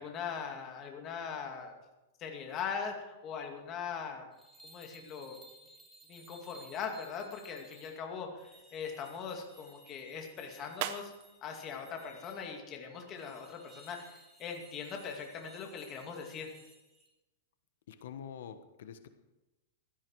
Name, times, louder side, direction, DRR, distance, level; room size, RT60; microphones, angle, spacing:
voice 1, 0.0-1.8 2.2-4.3 4.6-5.4 6.1-11.1 11.4-16.5, left 6 dB, 25° left, 3 dB, 2.3 m, -41 dB
sound 1, 4.3-8.0 8.4-12.4 13.1-17.1, right 2 dB, 10° right, 3.2 m, -58 dB
sound 2, 7.3-13.1, right 12 dB, 40° right, 0.8 m, -47 dB
voice 2, 17.9-19.1, left 8 dB, 70° left, 10 dB, 1.2 m, -46 dB
16.5 x 13.0 x 4.7 m, 1.0 s
supercardioid pair, 165°, 0 cm